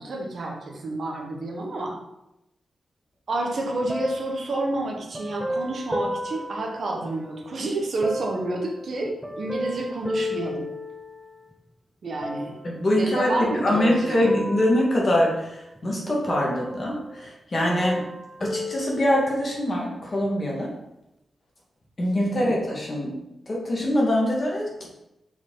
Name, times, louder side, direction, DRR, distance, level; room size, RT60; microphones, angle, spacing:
voice 1, 0.0-2.0 3.3-10.7 12.0-12.5 13.0-14.3 22.2-22.5, right 2 dB, 55° right, 0 dB, 1.1 m, -29 dB
sound 1, 3.9-7.5 8.0-11.5 12.2-12.9 13.5-15.8 16.3-17.3 17.5-19.6 20.2-20.3, equal, ahead, 0.4 m, -34 dB
voice 2, 12.6-18.0 18.4-20.7 22.0-23.2 23.5-24.9, left 1 dB, 35° left, -3 dB, 1.6 m, -24 dB
5.6 x 4.6 x 3.8 m, 0.87 s
wide cardioid pair, 155°, 0 cm